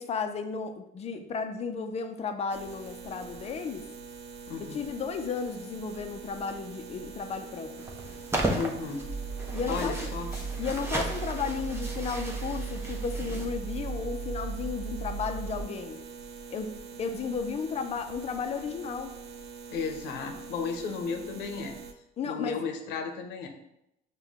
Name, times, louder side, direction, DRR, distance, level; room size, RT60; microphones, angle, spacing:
voice 1, 0.0-3.9 4.6-7.9 9.5-10.0 10.6-16.0 16.5-19.1 22.2-22.6, left 5 dB, 40° left, 7 dB, 0.5 m, -34 dB
sound 1, 2.5-21.9, right 6 dB, 80° right, 0.5 m, -45 dB
voice 2, 4.5-4.8 8.5-9.1 9.7-10.3 19.7-21.7 22.2-23.5, left 5 dB, 85° left, 5 dB, 0.7 m, -34 dB
sound 2, 7.8-13.5, right 1 dB, 15° right, 0.7 m, -35 dB
sound 3, 9.0-15.6, right 5 dB, 20° left, 1.2 m, -36 dB
5.4 x 2.2 x 3.5 m, 0.83 s
cardioid pair, 110°, 17 cm